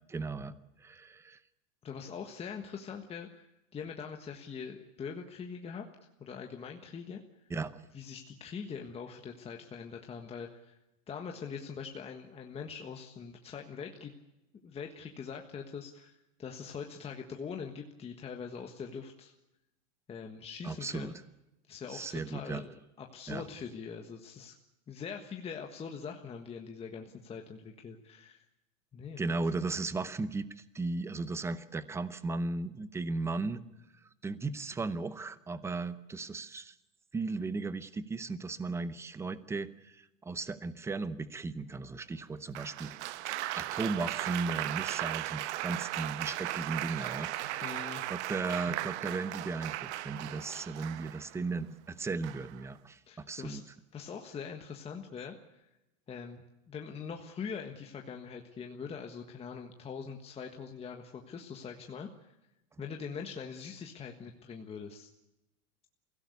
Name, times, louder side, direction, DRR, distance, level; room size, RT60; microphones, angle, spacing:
voice 1, 0.1-1.4 7.5-7.8 20.6-21.1 21.9-22.6 23.3-23.4 29.2-33.6 34.2-36.8 37.1-43.0 43.6-47.8 48.1-49.8 50.0-53.6, right 3 dB, 5° right, 15 dB, 0.7 m, -36 dB
voice 2, 1.8-3.5 3.7-5.8 6.2-7.2 7.9-10.8 11.1-14.1 14.6-19.3 20.1-21.2 21.7-24.5 24.9-28.4 28.9-29.2 47.6-48.0 53.1-53.6 53.9-55.4 56.1-62.3 62.8-65.1, left 6 dB, 15° left, 3 dB, 1.5 m, -43 dB
Applause, 42.5-51.4 52.2-52.6, right 15 dB, 60° right, 1.1 m, -37 dB
24.0 x 16.5 x 8.3 m, 0.94 s
supercardioid pair, 155°, 39 cm